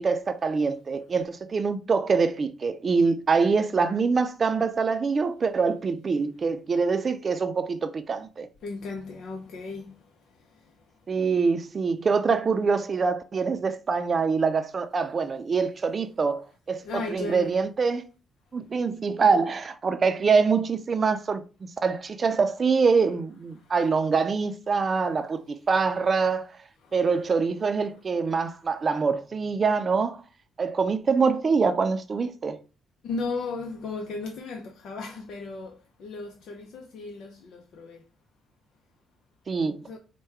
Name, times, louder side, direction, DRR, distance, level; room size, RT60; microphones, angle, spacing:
voice 1, 0.0-8.5 11.1-16.8 17.1-18.0 18.5-26.6 26.9-30.2 30.6-32.6 39.5-39.8, right 5 dB, 40° right, 0.5 m, -24 dB
voice 2, 8.6-11.4 15.2-15.3 15.8-15.9 16.4-17.6 21.9-22.0 22.9-23.0 23.5-24.1 24.4-25.1 25.6-26.1 26.8-29.0 33.0-38.0 39.8-40.0, left 3 dB, 70° left, 0.6 m, -38 dB
4.6 x 2.2 x 4.4 m
cardioid pair, 80°, 0 cm